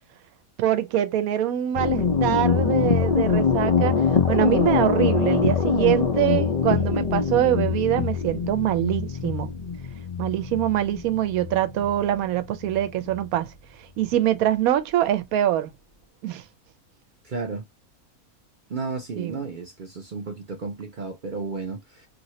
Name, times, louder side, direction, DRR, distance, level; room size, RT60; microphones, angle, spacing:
voice 1, 0.6-4.0 4.3-9.5 10.2-13.5 14.0-15.7 16.2-16.4 19.2-19.4, right 12 dB, 75° right, 1.0 m, -24 dB
sound 1, 1.7-13.2, left 6 dB, 70° left, 0.3 m, -24 dB
voice 2, 17.2-17.6 18.7-22.1, right 4 dB, 50° right, 0.6 m, -33 dB
2.8 x 2.7 x 3.0 m
omnidirectional pair, 1.6 m